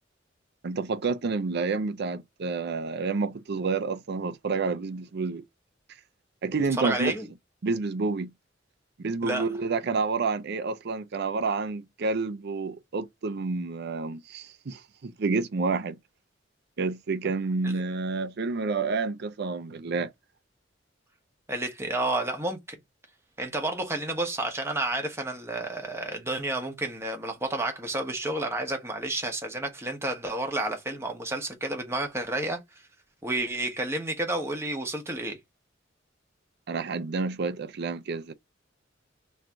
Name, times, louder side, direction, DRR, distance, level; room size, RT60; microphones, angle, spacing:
voice 1, 0.6-5.4 6.4-7.1 7.6-8.3 9.0-16.0 16.8-20.1 36.7-38.3, right 4 dB, 60° right, 0.5 m, -29 dB
voice 2, 6.8-7.3 9.2-9.5 17.6-17.8 21.5-22.8 23.4-32.6 33.2-35.4, right 2 dB, 15° right, 1.0 m, -30 dB
3.2 x 2.5 x 4.4 m
head